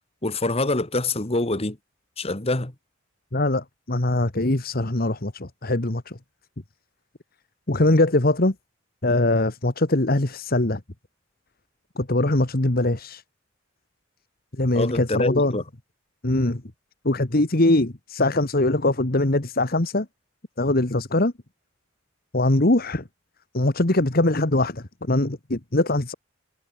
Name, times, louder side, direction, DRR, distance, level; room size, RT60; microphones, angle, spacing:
voice 1, 0.2-1.8 2.2-2.7 14.7-15.6, left 2 dB, 30° left, 1.7 m, -25 dB
voice 2, 3.3-6.2 7.7-8.5 9.0-10.8 12.0-13.2 14.6-15.6 16.2-16.6 17.0-20.1 20.6-21.3 22.3-23.0 23.5-26.1, left 2 dB, 50° left, 1.7 m, -22 dB
head